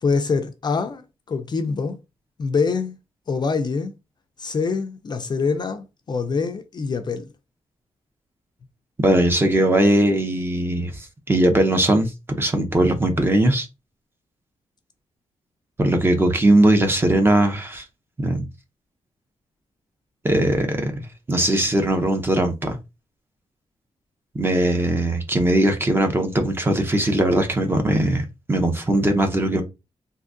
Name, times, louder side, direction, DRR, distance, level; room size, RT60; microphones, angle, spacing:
voice 1, 0.0-2.0 2.4-3.0 3.3-3.9 4.4-7.3, left 4 dB, 35° left, 0.4 m, -25 dB
voice 2, 9.0-13.7 15.8-17.8 18.2-18.5 20.2-22.8 24.3-29.6, right 1 dB, 20° right, 0.6 m, -20 dB
3.6 x 2.6 x 2.5 m
wide cardioid pair, 145°, 12 cm